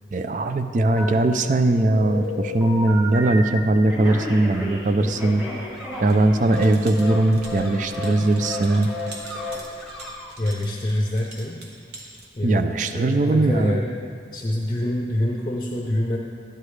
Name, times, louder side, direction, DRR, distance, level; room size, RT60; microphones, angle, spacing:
voice 1, 0.1-5.4 6.0-8.9 12.4-13.8, right 2 dB, 45° right, 9 dB, 0.4 m, -20 dB
Telephone, 1.0-1.6 1.9-3.5 3.9-6.7 7.0-7.2 7.4-7.7 7.9-8.1 8.4-8.6 8.9-9.1 9.3-9.6, left 1 dB, 20° right, 2.6 m, -32 dB
sound 1, 4.1-10.5, left 1 dB, 5° left, 0.9 m, -43 dB
voice 2, 5.0-5.3 10.4-11.6 12.4-12.6 12.9-13.8 14.3-16.2, left 1 dB, 25° left, -1 dB, 0.6 m, -25 dB
sound 2, 6.1-12.3, right 2 dB, 65° right, 1.2 m, -44 dB
12.0 x 9.6 x 3.3 m, 2.3 s
head